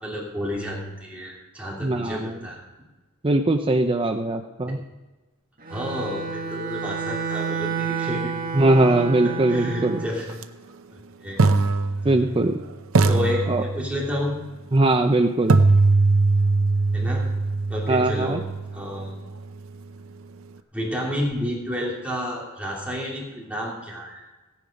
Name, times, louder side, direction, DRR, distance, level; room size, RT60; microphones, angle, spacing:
voice 1, 0.0-2.6 4.6-4.7 5.7-8.4 9.2-10.4 10.9-11.4 13.1-14.4 16.9-17.2 17.7-18.4 18.7-19.2 20.7-24.2, left 1 dB, 5° right, -4 dB, 2.7 m, -30 dB
voice 2, 1.8-2.4 3.2-4.8 8.5-10.0 12.0-12.6 13.5-13.6 14.7-15.6 17.9-18.4, right 2 dB, 25° right, 3 dB, 0.6 m, -21 dB
Bowed string instrument, 5.6-10.1, right 6 dB, 45° right, 1.7 m, -30 dB
sound 1, 10.3-10.4 11.4-12.6 12.9-14.2 15.5-19.4, right 3 dB, 65° right, 0.7 m, -21 dB
16.0 x 10.0 x 5.2 m, 1.1 s
head